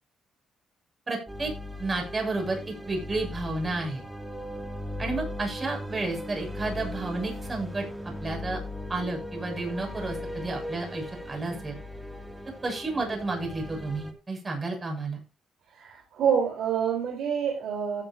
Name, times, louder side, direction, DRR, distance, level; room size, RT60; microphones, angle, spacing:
voice 1, 1.1-1.5 1.8-4.0 5.0-7.9 8.2-8.6 8.9-11.8 12.6-15.2, right 2 dB, 30° right, 2 dB, 7.1 m, -31 dB
sound 1, 1.3-14.1, left 1 dB, 5° right, 2.7 m, -38 dB
voice 2, 15.7-18.0, right 7 dB, 75° right, 1 dB, 3.9 m, -27 dB
16.0 x 9.8 x 2.8 m, 0.29 s
cardioid pair, 90°, 0 cm